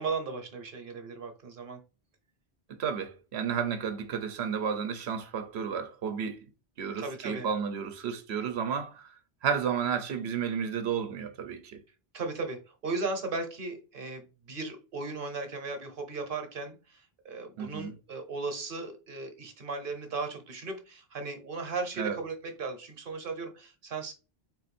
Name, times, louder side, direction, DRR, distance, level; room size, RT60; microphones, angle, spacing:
voice 1, 0.0-1.8 7.0-7.5 12.1-24.1, right 3 dB, 60° right, 1.1 m, -36 dB
voice 2, 2.8-6.4 6.8-9.1 9.4-11.8 17.6-17.9 22.0-22.2, right 7 dB, 85° right, 1.0 m, -32 dB
4.1 x 2.5 x 4.2 m
omnidirectional pair, 1.1 m